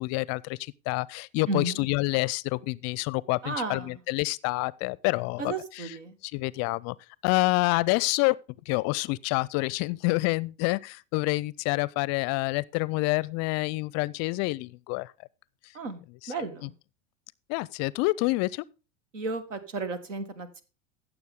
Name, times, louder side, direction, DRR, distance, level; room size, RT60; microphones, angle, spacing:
voice 1, 0.0-5.9 6.2-6.9 7.2-8.4 8.7-15.1 16.2-16.3 17.5-18.6, left 23 dB, 45° left, 0.4 m, -27 dB
voice 2, 1.5-1.8 3.4-3.9 5.4-6.1 15.7-16.0 16.3-16.7 19.1-20.6, right 3 dB, 80° right, 1.7 m, -33 dB
15.0 x 7.0 x 3.6 m
hypercardioid pair, 85°, 37 cm